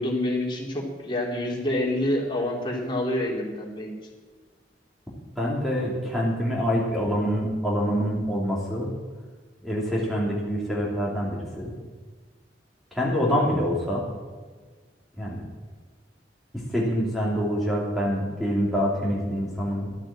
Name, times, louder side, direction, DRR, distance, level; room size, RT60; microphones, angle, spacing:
voice 1, 0.0-3.9, left 1 dB, 30° left, -2 dB, 3.3 m, -27 dB
voice 2, 5.4-8.9 9.6-11.7 12.9-14.0 15.2-15.4 16.7-19.9, equal, ahead, -6 dB, 3.0 m, -26 dB
12.5 x 9.0 x 8.9 m, 1.4 s
head